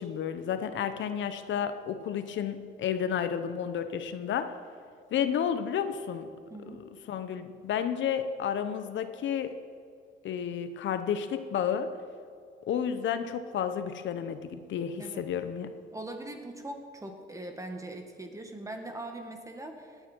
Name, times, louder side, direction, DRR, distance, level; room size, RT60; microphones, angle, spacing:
voice 1, 0.0-4.6 5.1-6.3 6.7-6.8 7.1-9.6 10.2-11.9 12.7-15.7, left 8 dB, 70° left, 10 dB, 0.8 m, -31 dB
voice 2, 6.5-6.8 15.0-15.3 15.9-20.0, right 1 dB, 15° right, 4 dB, 1.9 m, -41 dB
18.5 x 9.3 x 4.5 m, 2.3 s
cardioid pair, 90°, 20 cm